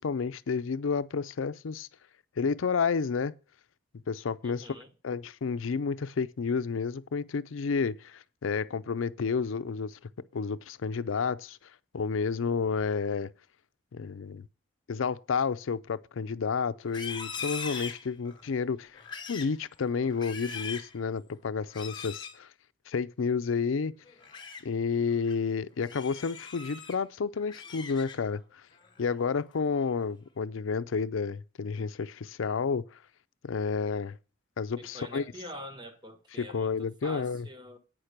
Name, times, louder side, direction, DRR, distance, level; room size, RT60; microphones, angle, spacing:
voice 1, 0.0-1.9 2.4-3.3 4.1-4.8 5.0-10.0 10.3-11.6 11.9-13.3 13.9-14.5 14.9-19.0 19.3-22.5 22.9-24.0 24.6-28.4 29.0-32.9 33.4-34.2 34.6-35.2 36.4-37.5, left 5 dB, 85° left, 0.5 m, -30 dB
voice 2, 4.4-4.9 34.8-37.8, equal, 20° right, 1.1 m, -45 dB
Livestock farm animals working animals, 16.8-18.5 18.9-19.6 20.0-20.9 21.7-22.4 24.1-24.6 25.1-25.3 25.8-27.0 27.4-28.4 28.8-29.1 29.5-30.0, left 6 dB, 25° left, 1.1 m, -41 dB
9.0 x 5.9 x 6.6 m
head